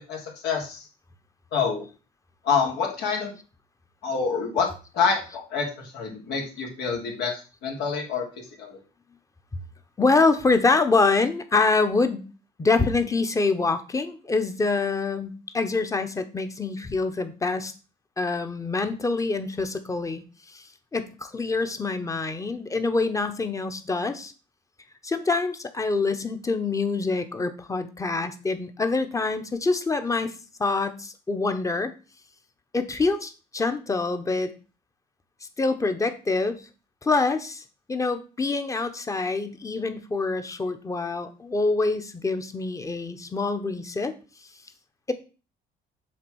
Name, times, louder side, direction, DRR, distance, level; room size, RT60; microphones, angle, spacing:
voice 1, 0.1-0.9 1.5-1.8 2.4-3.3 4.0-8.8, left 5 dB, 80° left, 0 dB, 2.9 m, -27 dB
voice 2, 10.0-12.2 12.6-17.7 18.2-24.3 25.0-30.3 30.6-31.9 32.7-34.5 35.6-36.7 37.0-44.2, left 3 dB, 20° left, 9 dB, 1.0 m, -25 dB
7.4 x 3.6 x 6.3 m, 0.34 s
cardioid pair, 110°, 17 cm